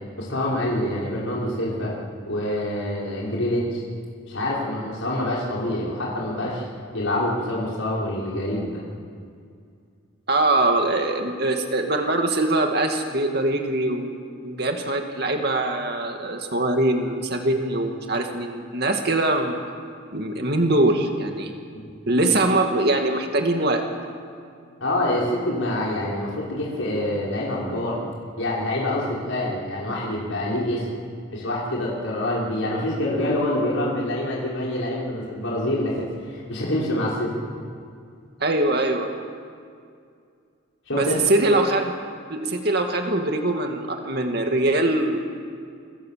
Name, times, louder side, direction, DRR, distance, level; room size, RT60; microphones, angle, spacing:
voice 1, 0.2-1.9 2.3-3.8 4.3-6.7 6.9-8.8 24.8-28.0 28.4-30.9 31.3-37.4 40.9-41.2, left 1 dB, 75° left, -5 dB, 5.7 m, -26 dB
voice 2, 10.3-14.2 14.4-19.6 20.1-21.5 22.1-23.9 38.4-39.1 40.9-41.9 42.3-45.3, right 2 dB, 50° right, 3 dB, 2.4 m, -22 dB
28.5 x 25.0 x 7.7 m, 2.3 s
head